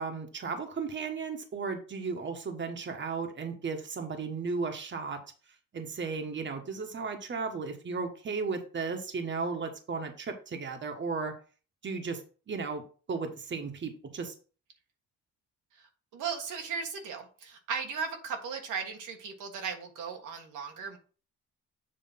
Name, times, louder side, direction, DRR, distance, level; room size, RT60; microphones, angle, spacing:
voice 1, 0.0-5.2 5.7-11.4 11.8-14.3, right 4 dB, 40° right, 5 dB, 1.4 m, -35 dB
voice 2, 15.8-21.0, right 5 dB, 85° right, 3 dB, 1.5 m, -37 dB
7.7 x 3.1 x 5.7 m, 0.38 s
cardioid pair, 90°, 30 cm